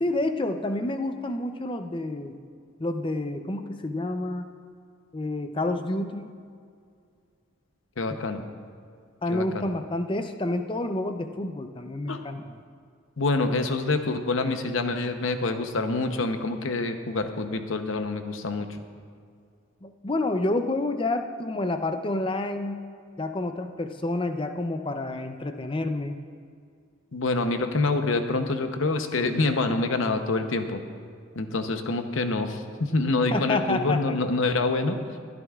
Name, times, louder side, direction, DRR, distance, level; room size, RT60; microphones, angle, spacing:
voice 1, 0.0-2.3 2.8-4.5 5.1-6.3 9.2-12.4 19.8-22.8 23.2-26.2 33.3-34.2, left 2 dB, 25° left, 7 dB, 0.5 m, -29 dB
voice 2, 8.0-8.4 9.3-9.7 12.1-12.2 13.2-18.7 27.1-30.8 31.4-35.0, left 3 dB, 70° left, 7 dB, 0.8 m, -26 dB
20.5 x 12.5 x 2.4 m, 2.3 s
head